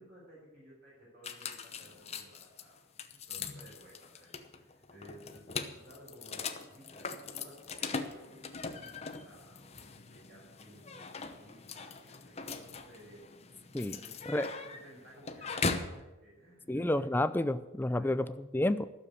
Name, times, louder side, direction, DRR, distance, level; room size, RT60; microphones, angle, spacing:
voice 1, 0.0-13.3 13.9-17.2 18.0-18.3, equal, 45° right, -6 dB, 5.4 m, -56 dB
sound 1, 1.2-16.0, left 4 dB, 30° left, 0.9 m, -40 dB
voice 2, 16.7-18.9, left 1 dB, 10° left, 13 dB, 0.4 m, -30 dB
13.0 x 7.1 x 9.9 m, 1.0 s
head